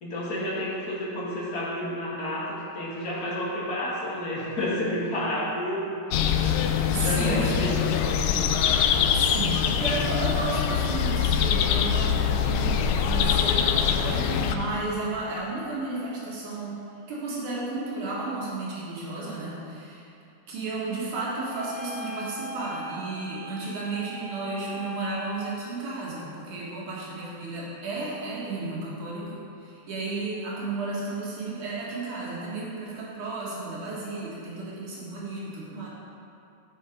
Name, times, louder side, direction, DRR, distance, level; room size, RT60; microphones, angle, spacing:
voice 1, 0.0-5.8 6.1-6.6 7.0-8.3, left 1 dB, 35° left, -6 dB, 2.0 m, -30 dB
sound 1, 6.1-14.5, left 8 dB, 80° left, 1.6 m, -24 dB
voice 2, 6.9-7.7 9.1-16.8 17.1-20.1 20.5-35.9, right 3 dB, 75° right, -6 dB, 3.0 m, -33 dB
sound 2, 21.5-25.7, equal, 45° right, 2.8 m, -40 dB
12.0 x 5.9 x 5.1 m, 2.7 s
omnidirectional pair, 3.5 m